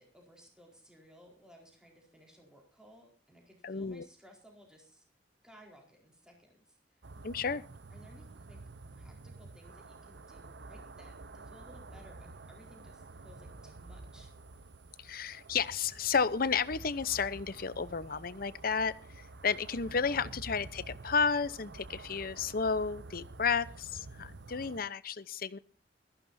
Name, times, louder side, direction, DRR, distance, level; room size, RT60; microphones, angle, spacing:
voice 1, 0.0-5.0 5.4-6.8 7.9-8.6 8.9-14.3 24.1-24.4, equal, 5° right, 0 dB, 4.4 m, -59 dB
voice 2, 3.6-4.1 7.2-7.6 15.0-25.6, left 5 dB, 55° left, 16 dB, 0.8 m, -32 dB
sound 1, 7.0-24.8, right 3 dB, 80° right, 0.8 m, -49 dB
21.0 x 14.5 x 2.7 m, 0.37 s
head